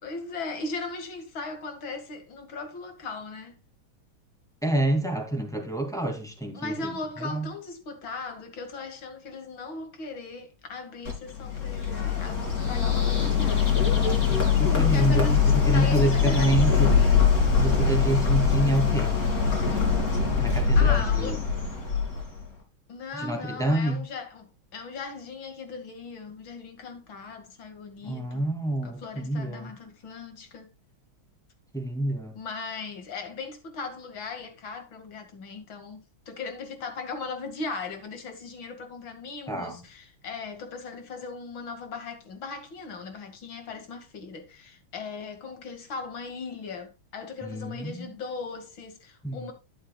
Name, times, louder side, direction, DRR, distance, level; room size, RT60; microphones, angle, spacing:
voice 1, 0.0-3.6 6.5-13.9 14.8-17.4 20.8-21.5 22.9-28.5 28.8-30.7 32.3-49.5, left 4 dB, 70° left, 2.8 m, -38 dB
voice 2, 4.6-6.9 7.2-7.5 14.6-15.4 15.7-16.9 17.6-19.1 20.4-21.3 23.2-24.0 28.0-29.0 29.3-29.7 31.7-32.3 39.5-39.8 47.4-48.1 49.2-49.5, right 1 dB, ahead, 2.3 m, -27 dB
Bird, 11.0-22.5, left 6 dB, 45° left, 3.4 m, -23 dB
11.0 x 10.0 x 2.3 m
omnidirectional pair, 2.2 m